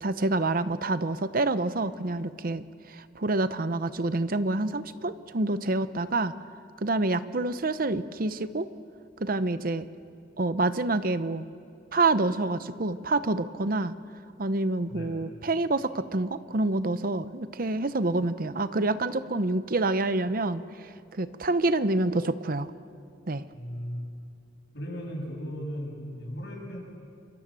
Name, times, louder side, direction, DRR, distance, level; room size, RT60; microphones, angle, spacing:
voice 1, 0.0-6.3 6.8-8.7 9.2-9.8 10.4-11.4 11.9-13.9 14.4-22.7 23.3-23.4, right 2 dB, 50° right, 13 dB, 0.8 m, -27 dB
voice 2, 23.5-24.0 24.7-26.8, equal, 65° left, 0 dB, 7.9 m, -36 dB
28.5 x 24.5 x 7.6 m, 2.4 s
head